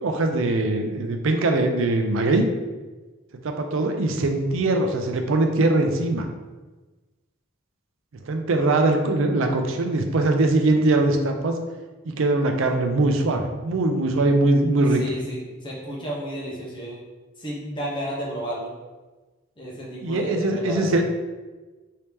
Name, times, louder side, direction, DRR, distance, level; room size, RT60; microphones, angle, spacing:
voice 1, 0.0-2.5 3.4-6.3 8.2-11.6 12.1-15.0 20.0-21.0, right 2 dB, 65° right, 4 dB, 0.4 m, -21 dB
voice 2, 15.0-17.0 17.4-18.7 19.6-21.0, equal, 25° left, -5 dB, 0.7 m, -32 dB
3.1 x 2.8 x 3.4 m, 1.2 s
head